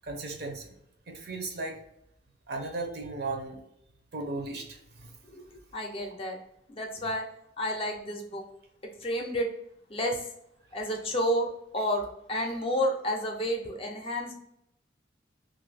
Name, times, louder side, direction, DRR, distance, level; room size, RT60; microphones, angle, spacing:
voice 1, 0.0-0.8 1.1-1.8 2.5-3.6 4.1-5.2, right 3 dB, 55° right, 3 dB, 0.6 m, -36 dB
voice 2, 5.7-6.4 6.7-7.2 7.6-8.4 9.0-9.5 9.9-10.2 10.7-14.3, equal, 30° left, 2 dB, 0.5 m, -30 dB
2.7 x 2.5 x 3.2 m, 0.77 s
head